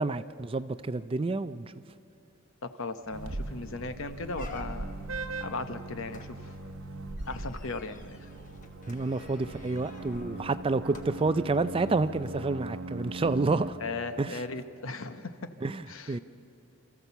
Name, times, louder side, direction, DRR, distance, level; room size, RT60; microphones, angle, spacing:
voice 1, 0.0-1.7 8.9-13.8 14.2-14.4 15.6-15.8 16.1-16.2, right 3 dB, 25° right, 13 dB, 0.4 m, -29 dB
voice 2, 2.6-5.0 5.4-6.4 7.3-8.3 13.8-15.5 15.9-16.2, left 3 dB, 60° left, 9 dB, 1.0 m, -37 dB
sound 1, 2.6-2.7 3.0-3.3 3.7-3.8 4.3-5.1 6.1-11.6 12.2-12.3, left 3 dB, 35° left, 1.2 m, -50 dB
sound 2, 3.1-13.7, right 2 dB, 65° right, 1.0 m, -39 dB
28.0 x 14.0 x 7.0 m, 2.9 s
head